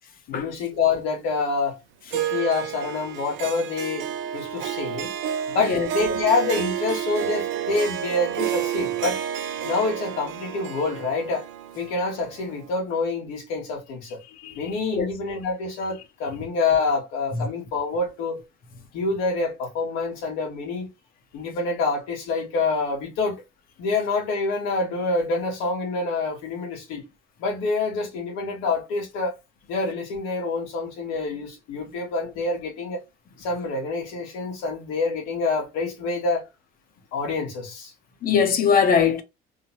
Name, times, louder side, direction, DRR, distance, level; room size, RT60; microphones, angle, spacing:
voice 1, 0.3-1.8 2.1-5.1 5.5-9.2 9.6-11.4 11.7-14.2 14.5-18.4 18.9-20.9 21.3-23.4 23.8-27.0 27.4-29.3 29.7-33.0 33.4-36.5 37.1-37.9, left 3 dB, 90° left, 1.6 m, -27 dB
Harp, 2.1-12.7, right 10 dB, 70° right, 0.6 m, -30 dB
voice 2, 14.3-15.1 38.2-39.2, left 6 dB, 45° left, 0.8 m, -22 dB
3.3 x 2.1 x 2.9 m
cardioid pair, 130°, 20 cm